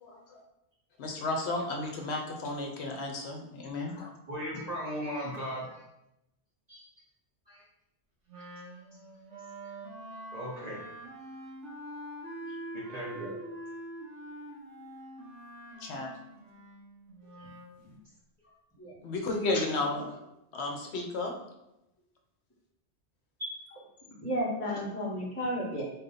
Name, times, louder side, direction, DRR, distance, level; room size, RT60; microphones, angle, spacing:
voice 1, 0.0-0.4 1.0-4.1 15.8-16.1 19.0-20.0 20.5-21.3, left 2 dB, 65° left, 2 dB, 0.9 m, -33 dB
voice 2, 4.3-5.8 6.7-6.8 7.5-7.6 8.3-8.4 10.3-10.8 12.5-13.4 23.4-23.6, equal, 40° right, -6 dB, 0.9 m, -37 dB
Wind instrument woodwind instrument, 8.3-17.8, right 1 dB, 85° right, 1.4 m, -45 dB
voice 3, 24.1-25.8, equal, 15° left, -8 dB, 1.1 m, -33 dB
4.2 x 2.7 x 3.9 m, 0.88 s
omnidirectional pair, 1.2 m